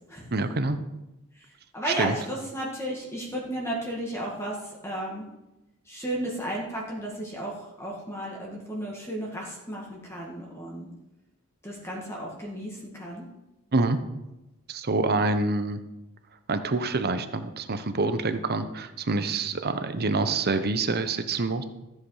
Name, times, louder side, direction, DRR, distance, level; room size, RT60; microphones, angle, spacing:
voice 1, 0.3-0.8 2.0-2.2 13.7-14.0 14.7-15.8 16.5-21.6, right 3 dB, 50° right, 10 dB, 0.9 m, -26 dB
voice 2, 1.7-5.2 5.9-10.9 11.6-13.2, right 1 dB, 10° left, -3 dB, 1.9 m, -34 dB
14.0 x 7.8 x 4.9 m, 0.97 s
head